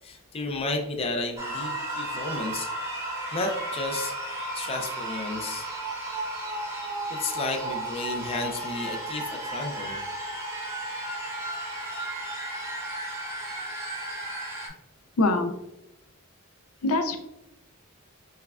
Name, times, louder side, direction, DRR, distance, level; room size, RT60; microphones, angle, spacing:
voice 1, 0.0-2.7 3.3-4.2 4.5-5.7 7.1-10.0, left 2 dB, 25° left, 2 dB, 0.4 m, -32 dB
sound 1, 1.4-14.7, right 1 dB, 15° right, 0.8 m, -34 dB
voice 2, 15.2-15.5 16.8-17.2, left 2 dB, 85° left, 7 dB, 0.5 m, -23 dB
5.5 x 2.2 x 2.3 m, 0.92 s
head